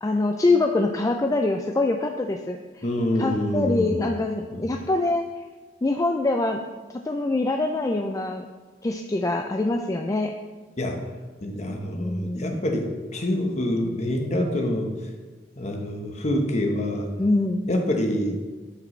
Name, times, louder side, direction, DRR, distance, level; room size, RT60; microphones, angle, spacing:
voice 1, 0.0-2.8 3.2-5.4 5.8-6.6 6.9-8.5 8.8-10.3 11.9-12.6 17.2-17.6, left 2 dB, 20° left, 4 dB, 0.3 m, -24 dB
voice 2, 2.8-4.1 4.5-4.7 10.8-11.0 11.4-14.9 15.6-17.1 17.7-18.4, left 1 dB, 40° left, 3 dB, 1.0 m, -26 dB
12.0 x 5.2 x 3.2 m, 1.3 s
head